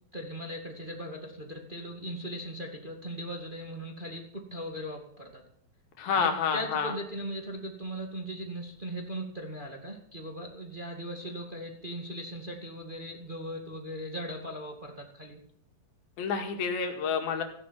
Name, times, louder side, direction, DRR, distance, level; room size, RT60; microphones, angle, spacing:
voice 1, 0.1-5.4 6.1-15.4, equal, 20° right, 2 dB, 1.4 m, -39 dB
voice 2, 6.0-6.9 16.2-17.4, left 6 dB, 80° left, 4 dB, 4.0 m, -29 dB
16.0 x 10.5 x 7.4 m, 0.62 s
omnidirectional pair, 4.2 m